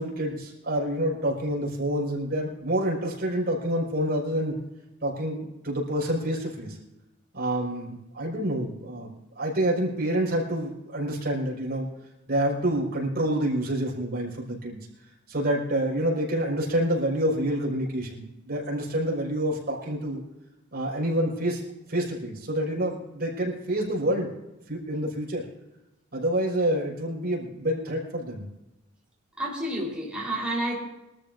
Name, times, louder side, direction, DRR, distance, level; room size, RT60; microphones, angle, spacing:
voice 1, 0.0-4.5 5.0-6.8 7.3-9.1 9.3-11.9 12.3-14.8 15.3-20.2 20.7-21.6 21.9-24.3 24.7-25.5 26.1-28.5, right 1 dB, 50° right, -2 dB, 5.1 m, -27 dB
voice 2, 29.4-30.8, right 1 dB, 5° right, -5 dB, 4.0 m, -30 dB
23.5 x 13.5 x 2.6 m, 0.93 s
head